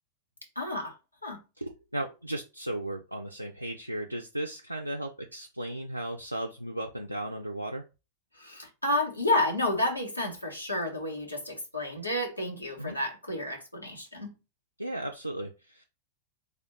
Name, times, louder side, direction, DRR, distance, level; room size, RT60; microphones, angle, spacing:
voice 1, 0.5-0.9 1.2-1.4 8.4-14.4, left 1 dB, 85° left, 1.1 m, -30 dB
voice 2, 1.6-7.8 12.8-13.0 14.8-15.8, right 1 dB, 90° right, 0.4 m, -35 dB
3.3 x 2.5 x 4.1 m
figure-of-eight pair, 90°, 0 cm